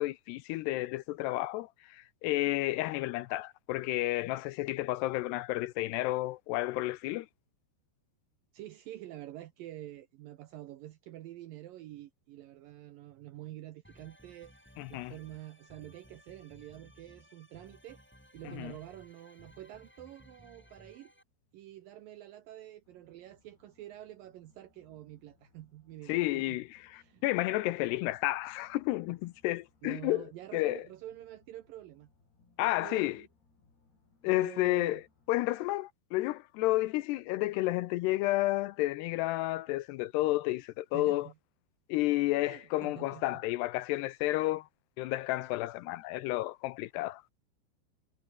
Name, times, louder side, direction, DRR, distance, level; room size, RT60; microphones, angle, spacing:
voice 1, 0.0-7.3 14.8-15.1 18.5-18.7 26.1-30.3 30.5-30.8 32.6-33.2 34.2-35.0 35.3-41.3 41.9-44.7 45.0-47.3, left 18 dB, 80° left, 2.6 m, -31 dB
voice 2, 8.5-14.5 14.9-18.0 18.3-21.1 21.5-26.6 26.9-27.3 29.8-32.1 32.6-33.3 34.2-35.0 40.9-41.3 42.4-43.4 44.4-44.5, right 14 dB, 75° right, 2.1 m, -47 dB
sound 1, 13.8-21.2, equal, ahead, 4.9 m, -58 dB
sound 2, 22.8-35.3, left 4 dB, 60° left, 9.7 m, -68 dB
omnidirectional pair, 5.1 m